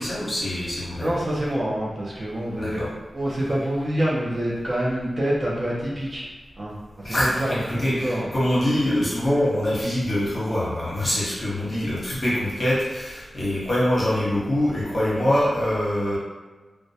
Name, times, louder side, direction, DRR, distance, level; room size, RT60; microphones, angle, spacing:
voice 1, 0.0-1.1 2.6-2.9 7.0-16.2, left 1 dB, 35° left, -8 dB, 0.9 m, -24 dB
voice 2, 1.0-2.8 3.1-6.2 6.6-6.8 7.0-8.3, right 1 dB, 35° right, -6 dB, 0.5 m, -26 dB
2.2 x 2.1 x 2.6 m, 1.3 s
wide cardioid pair, 135°, 0 cm